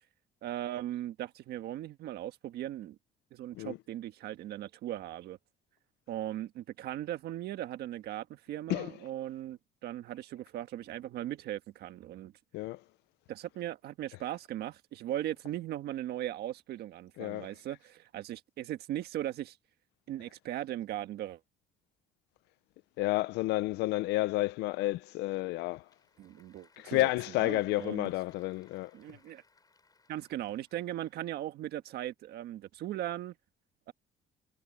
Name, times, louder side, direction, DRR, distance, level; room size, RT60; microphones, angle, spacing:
voice 1, 0.4-3.0 3.3-5.4 6.1-12.3 13.3-19.6 20.1-21.4 26.2-27.1 27.4-28.1 28.9-29.4 30.1-33.3, right 13 dB, 75° right, 1.5 m, -38 dB
voice 2, 8.7-9.1 12.5-12.8 14.1-14.2 17.2-17.8 23.0-25.8 26.8-28.9, left 18 dB, 90° left, 0.7 m, -31 dB
Applause / Crowd, 25.4-31.4, left 4 dB, 20° left, 6.7 m, -67 dB
cardioid pair, 110°, 17 cm